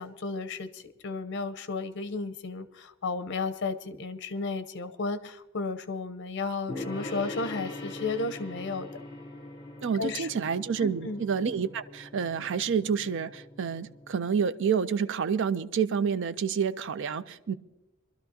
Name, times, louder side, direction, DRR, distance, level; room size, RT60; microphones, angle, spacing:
voice 1, 0.0-9.0 10.0-10.3 10.8-11.2, left 3 dB, 55° left, 0.7 m, -33 dB
Gong, 6.7-14.1, left 2 dB, 25° left, 2.9 m, -42 dB
voice 2, 9.8-17.5, right 6 dB, 60° right, 0.5 m, -29 dB
23.0 x 12.5 x 2.8 m
head